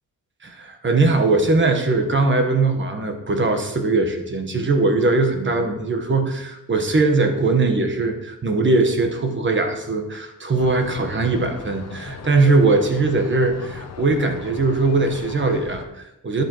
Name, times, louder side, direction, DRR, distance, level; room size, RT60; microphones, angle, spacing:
voice 1, 0.4-16.4, right 3 dB, 35° right, 5 dB, 1.2 m, -20 dB
sound 1, 10.6-15.9, left 6 dB, 50° left, 0.8 m, -37 dB
11.0 x 8.6 x 3.0 m, 0.92 s
wide cardioid pair, 130°, 34 cm